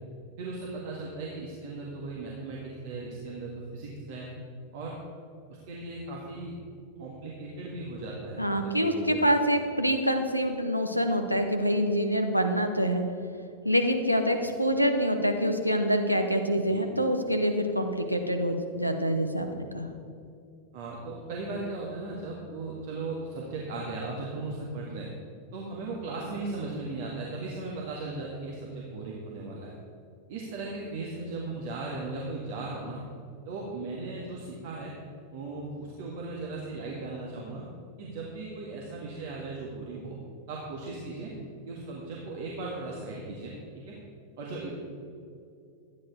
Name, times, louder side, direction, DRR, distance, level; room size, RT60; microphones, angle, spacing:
voice 1, 0.4-4.3 4.7-4.9 5.5-6.6 7.0-9.2 16.7-16.8 20.7-25.1 25.5-29.7 30.3-33.0 33.5-34.9 35.3-37.6 38.0-40.2 40.5-41.3 41.7-44.0 44.4-44.7, right 3 dB, 50° right, -3 dB, 1.8 m, -37 dB
voice 2, 8.4-13.0 13.6-19.9, equal, 90° right, 4 dB, 0.8 m, -26 dB
12.5 x 9.6 x 4.7 m, 2.5 s
figure-of-eight pair, 90°, 0 cm